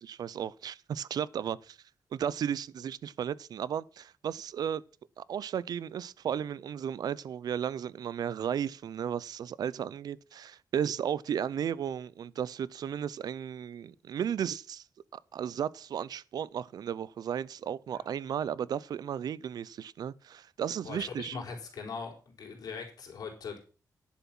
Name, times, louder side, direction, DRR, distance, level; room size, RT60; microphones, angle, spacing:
voice 1, 0.0-1.8 2.1-4.8 5.2-14.8 15.1-21.4, right 8 dB, 75° right, 0.5 m, -34 dB
voice 2, 20.8-23.6, left 5 dB, 70° left, 4.4 m, -41 dB
11.0 x 7.1 x 6.0 m
wide cardioid pair, 125°, 7 cm